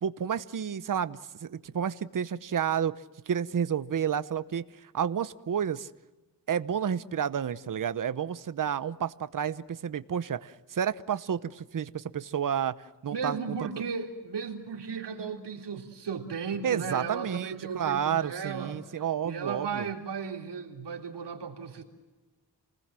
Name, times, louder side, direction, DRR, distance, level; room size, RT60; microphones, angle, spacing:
voice 1, 0.0-2.9 3.3-5.9 6.5-12.7 13.0-13.6 16.6-19.9, right 8 dB, 50° right, 14 dB, 0.9 m, -30 dB
voice 2, 13.1-18.8 19.2-21.8, right 6 dB, 70° right, 2 dB, 3.7 m, -35 dB
28.5 x 20.0 x 7.6 m, 1.1 s
wide cardioid pair, 115°, 42 cm